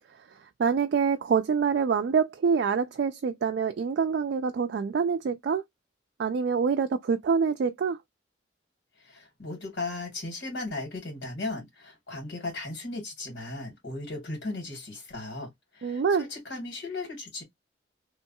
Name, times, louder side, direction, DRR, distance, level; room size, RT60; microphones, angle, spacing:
voice 1, 0.6-5.6 6.2-8.0 15.8-16.2, right 6 dB, 65° right, 0.3 m, -26 dB
voice 2, 9.0-17.4, left 2 dB, 85° left, 2.0 m, -36 dB
3.1 x 2.3 x 2.6 m
head